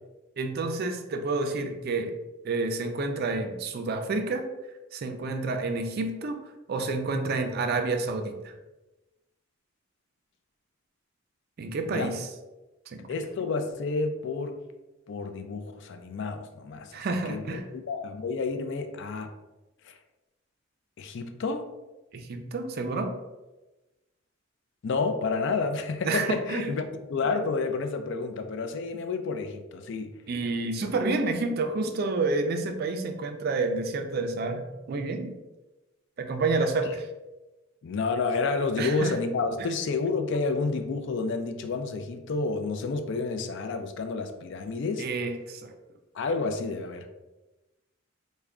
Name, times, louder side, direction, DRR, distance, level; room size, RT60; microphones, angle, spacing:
voice 1, 0.4-2.1 2.4-4.5 4.9-6.4 6.7-8.5 11.6-12.3 12.9-13.0 16.9-17.6 22.1-23.1 26.1-26.8 30.3-35.3 36.2-37.1 38.8-39.1 45.0-45.7, right 3 dB, 50° right, 6 dB, 0.4 m, -29 dB
voice 2, 13.1-14.6 15.1-17.0 17.3-19.3 19.8-20.0 21.0-21.6 24.8-30.1 37.8-45.1 46.1-47.1, left 4 dB, 60° left, 7 dB, 0.4 m, -30 dB
3.4 x 2.1 x 3.6 m, 1.1 s
head